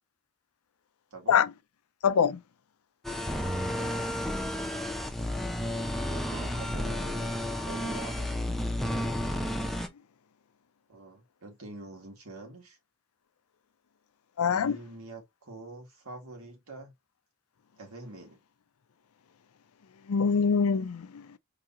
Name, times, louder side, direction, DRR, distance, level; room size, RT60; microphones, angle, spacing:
voice 1, 2.0-2.4 14.4-14.8 20.1-21.2, left 6 dB, 85° left, 0.5 m, -24 dB
sound 1, 3.0-9.9, left 1 dB, ahead, 0.6 m, -32 dB
voice 2, 3.6-4.3 6.1-7.3 7.6-8.3 10.9-12.8 14.4-16.9 17.8-18.4, right 2 dB, 85° right, 1.9 m, -45 dB
4.9 x 2.8 x 2.5 m
head